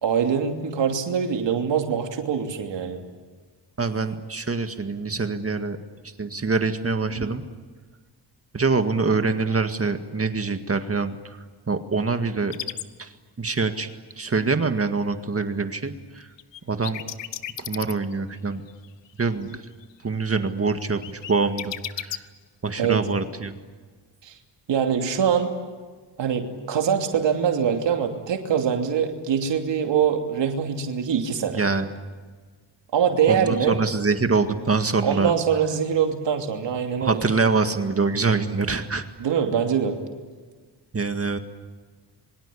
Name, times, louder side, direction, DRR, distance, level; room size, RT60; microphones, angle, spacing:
voice 1, 0.0-3.0 22.8-23.0 24.2-24.3 24.7-25.5 26.2-31.6 32.9-33.8 35.0-37.2 39.2-40.0, right 7 dB, 85° right, 4 dB, 2.9 m, -23 dB
voice 2, 3.8-5.8 6.2-7.4 8.5-11.4 11.7-12.5 13.0-13.1 13.4-13.9 14.2-16.3 16.7-17.0 17.6-18.6 19.2-19.5 20.0-22.2 22.6-23.6 31.5-31.9 33.3-35.3 37.0-39.0 40.9-41.4, right 4 dB, 35° right, 8 dB, 1.9 m, -24 dB
sound 1, 12.5-12.8 16.4-18.4 18.7-19.6 19.8-20.3 20.8-22.2, left 11 dB, 90° left, 1.1 m, -34 dB
27.0 x 24.0 x 8.6 m, 1.4 s
cardioid pair, 95°, 42 cm